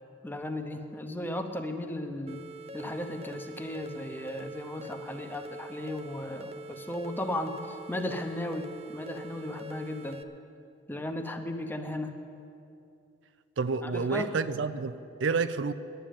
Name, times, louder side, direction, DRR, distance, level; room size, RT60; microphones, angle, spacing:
voice 1, 0.2-2.4 2.7-10.2 10.9-12.1 13.8-14.3, left 1 dB, 10° left, 6 dB, 0.8 m, -35 dB
sound 1, 2.3-10.2, right 1 dB, 35° right, 0.5 m, -44 dB
voice 2, 13.6-15.7, right 4 dB, 90° right, 13 dB, 0.5 m, -29 dB
10.5 x 10.0 x 9.1 m, 2.6 s
head